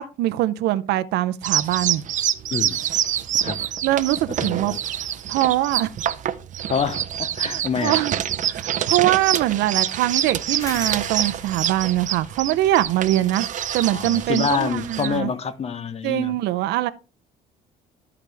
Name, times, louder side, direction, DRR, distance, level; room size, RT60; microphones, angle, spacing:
voice 1, 0.0-2.0 3.8-4.7 5.3-5.9 7.4-8.1 8.4-13.5 13.7-15.3 16.0-16.9, right 15 dB, 85° right, 0.6 m, -22 dB
sound 1, 1.4-15.2, right 10 dB, 50° right, 0.6 m, -26 dB
voice 2, 4.4-4.8 6.7-8.0 13.9-16.4, left 6 dB, 40° left, 0.8 m, -27 dB
sound 2, 10.6-15.5, left 2 dB, 20° left, 1.8 m, -42 dB
13.5 x 4.8 x 3.4 m
cardioid pair, 110°, 17 cm